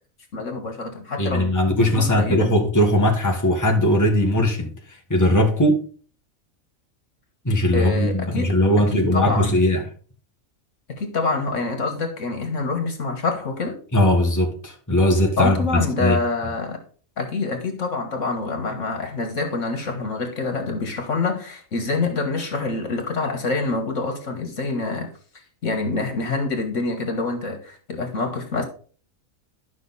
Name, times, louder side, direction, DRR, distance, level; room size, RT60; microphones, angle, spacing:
voice 1, 0.3-1.5 1.8-2.5 7.7-8.6 8.9-9.5 10.9-13.8 15.4-16.8 17.2-25.1 25.6-28.6, left 3 dB, 65° left, 1.9 m, -26 dB
voice 2, 1.2-5.8 7.5-9.8 13.9-16.2, left 1 dB, 15° left, 1.6 m, -19 dB
11.5 x 6.0 x 4.2 m
omnidirectional pair, 1.4 m